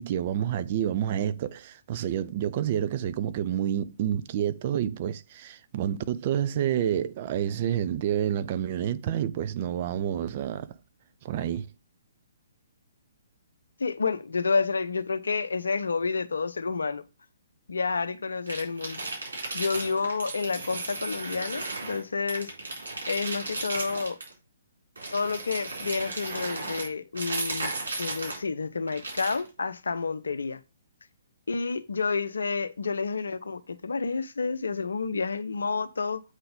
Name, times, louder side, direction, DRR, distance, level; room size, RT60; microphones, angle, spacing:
voice 1, 0.0-10.7 11.2-11.7, right 10 dB, 40° right, 0.5 m, -29 dB
voice 2, 13.8-17.0 17.7-19.0 19.5-22.5 23.1-24.2 25.1-30.6 31.5-36.2, left 4 dB, 70° left, 0.7 m, -29 dB
sound 1, 18.5-22.0 22.3-24.3 25.0-28.4 28.9-29.5, right 2 dB, 70° right, 3.8 m, -35 dB
8.1 x 3.9 x 5.2 m
figure-of-eight pair, 125°, 0 cm